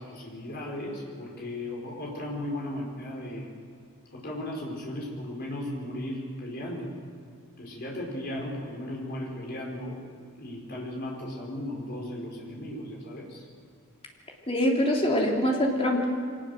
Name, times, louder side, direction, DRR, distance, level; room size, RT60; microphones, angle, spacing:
voice 1, 0.0-3.5 4.1-6.9 7.6-10.0 10.4-13.4, left 1 dB, 45° left, -2 dB, 5.1 m, -36 dB
voice 2, 14.5-16.0, left 1 dB, 25° left, -1 dB, 3.2 m, -24 dB
24.0 x 19.0 x 6.6 m, 2.1 s
head